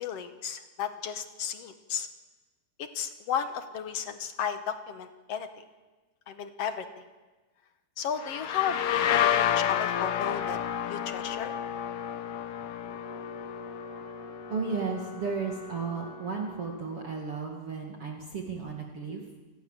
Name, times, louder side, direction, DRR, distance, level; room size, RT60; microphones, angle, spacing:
voice 1, 0.0-2.1 2.8-5.5 6.3-6.9 8.0-10.6 10.8-11.5, left 8 dB, 60° left, 9 dB, 1.8 m, -34 dB
sound 1, 8.2-15.8, left 10 dB, 75° left, 1.3 m, -30 dB
Wind instrument woodwind instrument, 12.8-17.2, right 2 dB, 10° right, 2.5 m, -47 dB
voice 2, 14.5-19.2, right 5 dB, 40° right, 0 dB, 2.9 m, -34 dB
28.5 x 20.0 x 7.5 m, 1.3 s
omnidirectional pair, 4.2 m